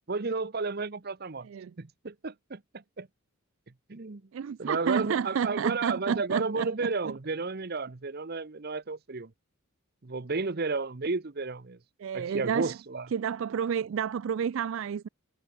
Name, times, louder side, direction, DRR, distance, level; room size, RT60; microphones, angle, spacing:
voice 1, 0.1-1.5 1.8-3.1 3.9-4.2 4.6-9.3 10.0-11.8 12.1-13.1, right 4 dB, 45° right, 0.8 m, -32 dB
voice 2, 1.4-1.7 4.3-6.9 12.0-12.8 13.1-15.1, right 7 dB, 60° right, 0.3 m, -30 dB
head